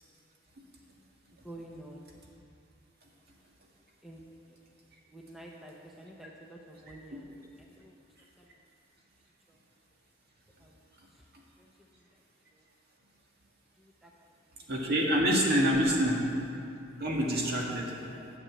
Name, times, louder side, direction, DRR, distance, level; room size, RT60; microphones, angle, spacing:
voice 1, 1.4-2.1 4.0-4.2 5.1-7.9 8.4-8.6 9.5-9.6 10.6-10.8 11.6-12.0 13.8-14.1 15.5-15.6 17.9-18.3, right 1 dB, ahead, -2 dB, 0.8 m, -50 dB
voice 2, 14.7-16.2 17.0-17.9 18.2-18.3, equal, 50° right, -2 dB, 2.0 m, -26 dB
10.5 x 7.0 x 8.5 m, 2.6 s
head